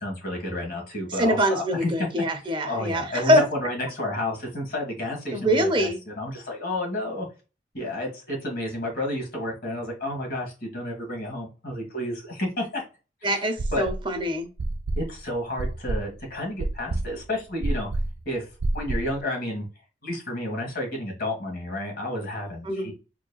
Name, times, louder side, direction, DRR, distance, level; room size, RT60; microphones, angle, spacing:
voice 1, 0.0-2.1 2.6-7.3 7.7-12.8 13.2-13.3 13.7-13.9 15.0-17.9 18.3-18.5 18.7-19.7 20.0-22.9, left 1 dB, 55° left, 0 dB, 1.8 m, -31 dB
voice 2, 1.1-3.4 5.3-6.0 13.2-14.5 22.6-22.9, equal, 30° right, 6 dB, 0.8 m, -24 dB
sound 1, 13.6-14.2 14.6-19.2, right 2 dB, 70° right, 0.4 m, -28 dB
4.6 x 2.9 x 2.3 m, 0.31 s
head